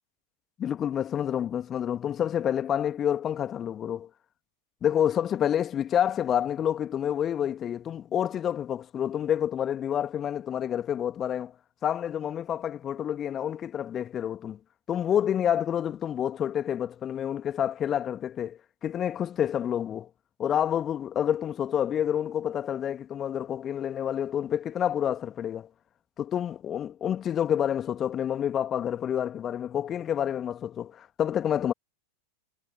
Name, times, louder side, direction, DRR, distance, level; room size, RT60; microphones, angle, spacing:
voice 1, 0.6-4.1 4.8-11.5 11.8-14.6 14.9-20.1 20.4-25.7 26.2-31.7, left 9 dB, 25° left, 2.3 m, -28 dB
figure-of-eight pair, 90°, 0 cm